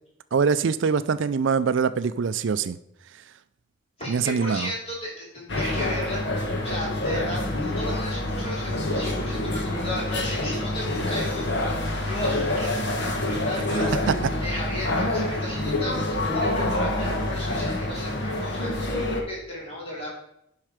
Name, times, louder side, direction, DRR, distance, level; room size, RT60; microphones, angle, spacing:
voice 1, 0.3-2.8 4.1-4.7 14.1-14.3, right 5 dB, 65° right, 14 dB, 0.4 m, -23 dB
voice 2, 4.0-11.7 12.1-14.0 14.4-20.1, left 1 dB, 30° left, -4 dB, 3.2 m, -35 dB
sound 1, 5.5-19.2, left 1 dB, 55° left, 1.3 m, -27 dB
10.5 x 5.6 x 5.0 m, 0.76 s
head